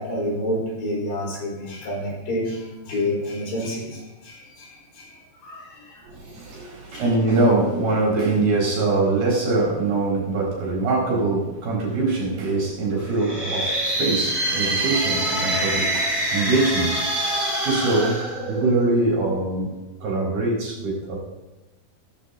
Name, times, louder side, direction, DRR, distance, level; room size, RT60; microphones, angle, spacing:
voice 1, 0.0-6.4 6.9-7.1, left 1 dB, 85° left, -5 dB, 7.0 m, -29 dB
voice 2, 6.0-17.0 17.2-17.3 17.6-18.2 18.5-19.8 20.0-21.2, right 2 dB, 65° right, -3 dB, 6.3 m, -23 dB
sound 1, 13.1-19.0, right 1 dB, 10° right, 3.1 m, -25 dB
16.5 x 14.0 x 3.0 m, 1.1 s
omnidirectional pair, 4.7 m